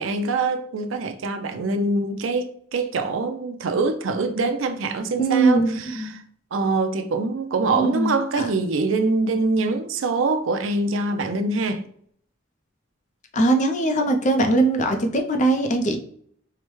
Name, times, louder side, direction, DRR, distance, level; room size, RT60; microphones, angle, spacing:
voice 1, 0.0-6.2 6.5-11.8, right 3 dB, 75° right, 0.5 m, -24 dB
voice 2, 5.2-6.2 7.7-8.5 13.3-16.0, right 2 dB, 40° left, 0.5 m, -21 dB
4.7 x 2.1 x 3.0 m
head